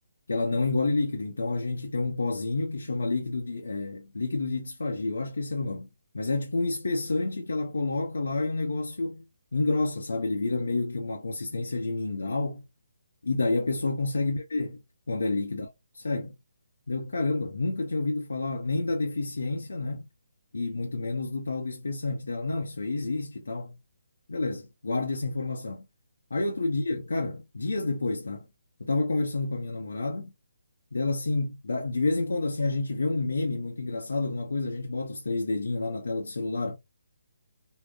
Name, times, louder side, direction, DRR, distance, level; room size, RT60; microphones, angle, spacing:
voice 1, 0.3-5.9 6.1-9.2 9.5-12.6 13.2-14.8 15.1-16.3 16.9-20.1 20.5-23.8 24.3-25.8 26.3-28.5 28.8-30.3 30.9-36.8, left 3 dB, 80° left, 0.6 m, -29 dB
3.7 x 2.0 x 2.3 m
figure-of-eight pair, 150°, 0 cm